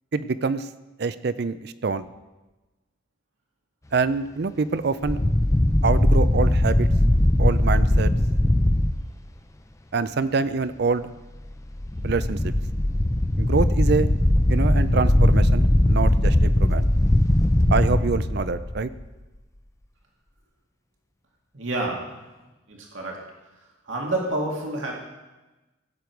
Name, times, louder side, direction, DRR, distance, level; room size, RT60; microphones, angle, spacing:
voice 1, 0.1-0.7 1.0-2.1 3.9-5.2 5.8-6.9 7.4-8.1 9.9-11.1 12.0-12.5 13.4-14.1 14.5-16.9 17.7-18.9, right 4 dB, 55° right, 14 dB, 0.5 m, -25 dB
sound 1, 5.0-8.9 11.7-19.0, left 1 dB, 15° left, 0.5 m, -20 dB
voice 2, 21.5-22.1 22.7-23.2 23.8-25.0, right 2 dB, 85° right, -1 dB, 2.2 m, -28 dB
16.5 x 6.9 x 4.6 m, 1.1 s
head